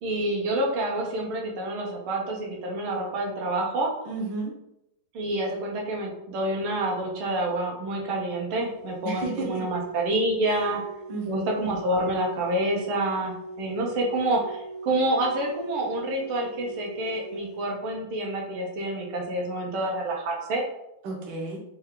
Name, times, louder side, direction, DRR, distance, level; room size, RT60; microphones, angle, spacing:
voice 1, 0.0-3.9 5.1-10.8 11.3-20.6, right 1 dB, 85° right, -1 dB, 1.7 m, -28 dB
voice 2, 4.0-4.5 9.0-9.6 10.5-10.6 11.1-11.5 21.0-21.6, right 3 dB, 65° right, -1 dB, 1.4 m, -32 dB
sound 1, 8.6-17.7, right 2 dB, 65° left, 0.8 m, -41 dB
4.4 x 2.3 x 3.6 m, 0.84 s
omnidirectional pair, 2.3 m